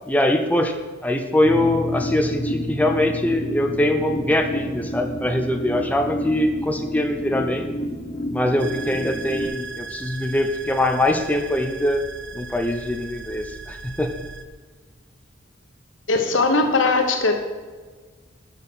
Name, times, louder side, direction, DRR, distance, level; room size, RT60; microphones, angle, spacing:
voice 1, 0.1-7.7 8.3-12.1 12.3-14.1, left 1 dB, 10° left, 5 dB, 0.5 m, -22 dB
sound 1, 1.4-9.5, equal, 50° left, 1.0 m, -29 dB
sound 2, 8.6-14.4, right 4 dB, 65° right, 0.6 m, -37 dB
voice 2, 16.1-17.4, left 3 dB, 85° left, 5 dB, 1.1 m, -19 dB
6.4 x 5.7 x 6.8 m, 1.4 s
head